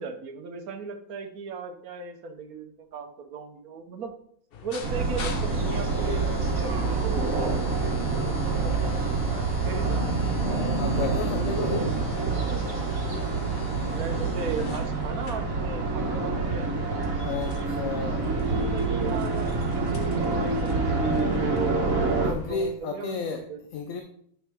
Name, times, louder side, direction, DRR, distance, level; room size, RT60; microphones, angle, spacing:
voice 1, 0.0-4.2 4.6-9.3 9.6-10.2 13.8-16.7 18.5-23.6, right 5 dB, 85° right, 1.4 m, -37 dB
sound 1, 4.5-22.7, left 6 dB, 50° left, 0.9 m, -42 dB
sound 2, 4.8-22.3, right 3 dB, 70° right, 1.7 m, -27 dB
voice 2, 10.8-11.9 17.2-18.4 22.2-23.5 23.7-24.0, left 5 dB, 70° left, 1.1 m, -32 dB
9.1 x 5.9 x 3.6 m
omnidirectional pair, 1.5 m